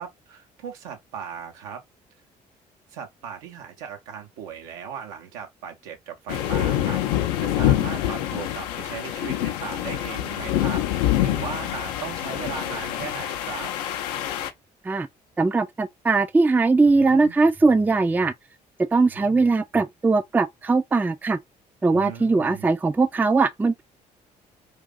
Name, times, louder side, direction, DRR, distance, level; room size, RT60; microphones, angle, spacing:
voice 1, 0.0-1.8 2.9-13.7 16.9-17.4 19.1-19.4 21.9-22.7, right 7 dB, 75° right, 0.7 m, -38 dB
sound 1, 6.3-14.5, left 12 dB, 70° left, 0.5 m, -26 dB
voice 2, 15.4-18.3 18.9-21.4 21.8-23.8, right 3 dB, 10° right, 0.3 m, -20 dB
2.5 x 2.4 x 3.7 m
figure-of-eight pair, 50°, 21 cm